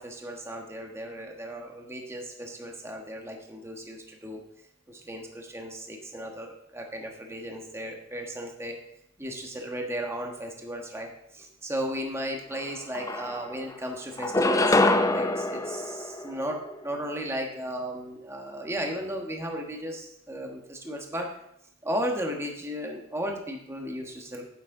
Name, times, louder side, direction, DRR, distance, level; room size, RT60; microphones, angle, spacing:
voice 1, 0.0-4.4 4.9-8.8 9.2-21.3 21.8-24.4, equal, 15° right, 1 dB, 1.3 m, -35 dB
sound 1, 12.5-12.6 12.9-13.7 14.2-16.8, left 2 dB, 15° left, 0.4 m, -25 dB
9.8 x 7.2 x 3.8 m, 0.76 s
head